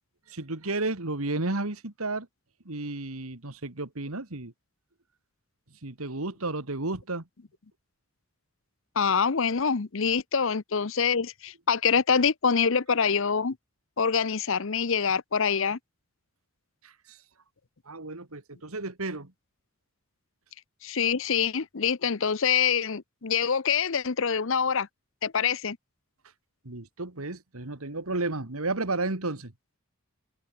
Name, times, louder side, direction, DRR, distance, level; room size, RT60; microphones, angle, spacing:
voice 1, 0.3-2.3 2.7-4.5 5.8-7.2 16.8-17.2 17.9-19.3 26.7-29.5, right 2 dB, 85° right, 2.3 m, -32 dB
voice 2, 9.0-13.6 14.0-15.8 20.8-24.9 25.2-25.8, left 6 dB, 65° left, 0.7 m, -25 dB
open air
head